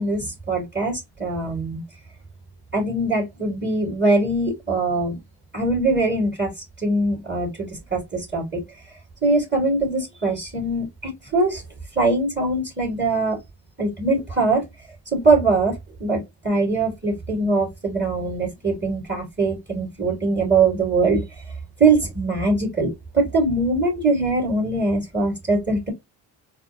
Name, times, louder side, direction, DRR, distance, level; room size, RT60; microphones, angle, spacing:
voice 1, 0.0-1.8 2.7-5.2 5.5-6.5 6.8-8.6 9.2-11.6 12.0-13.4 13.8-14.6 15.1-15.7 16.0-16.2 16.4-21.2 21.8-25.9, right 3 dB, 25° right, 2.3 m, -22 dB
4.1 x 2.2 x 2.8 m
hypercardioid pair, 45°, 46 cm